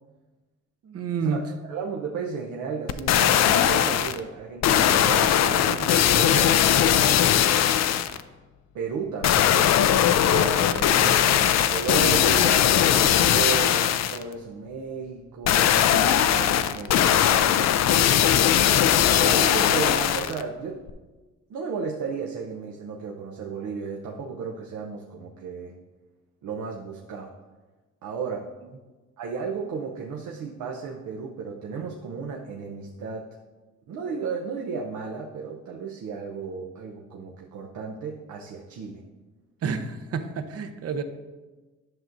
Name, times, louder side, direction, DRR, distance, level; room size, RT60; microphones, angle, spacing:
voice 1, 0.8-1.4 39.6-41.0, right 5 dB, 55° right, 8 dB, 0.8 m, -29 dB
voice 2, 1.7-7.6 8.7-17.7 19.1-20.8 21.5-25.7 26.4-27.3 28.0-28.5 29.2-33.3 33.9-39.0, right 5 dB, 80° right, -1 dB, 0.8 m, -34 dB
sound 1, 2.9-4.2 4.6-8.2 9.2-14.2 15.5-20.4 20.9-21.0, left 10 dB, 60° left, 0.5 m, -20 dB
11.0 x 6.0 x 2.6 m, 1.2 s
cardioid pair, 90°, 30 cm